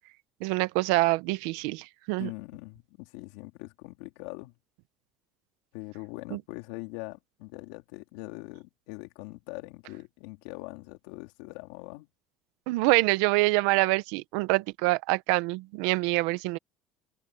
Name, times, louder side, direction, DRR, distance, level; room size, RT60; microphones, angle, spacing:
voice 1, 0.4-2.3 6.3-6.4 12.7-16.6, right 21 dB, 85° right, 1.0 m, -25 dB
voice 2, 2.2-4.5 5.7-12.1, left 23 dB, 90° left, 4.1 m, -42 dB
cardioid pair, 145°, 0 cm